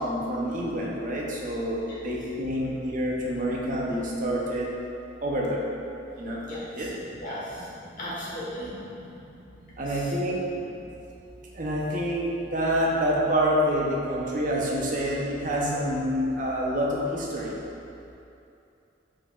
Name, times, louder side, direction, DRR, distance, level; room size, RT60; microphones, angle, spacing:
voice 1, 0.0-4.7 5.2-5.6 6.2-6.4 6.8-6.9 7.6-7.7 8.5-8.7 9.8-10.4 11.6-17.5, equal, 45° right, -3 dB, 0.7 m, -27 dB
voice 2, 6.5-6.9 7.2-7.7 8.0-8.7 9.9-10.1, equal, 45° left, -8 dB, 1.3 m, -36 dB
4.6 x 4.5 x 2.3 m, 2.8 s
head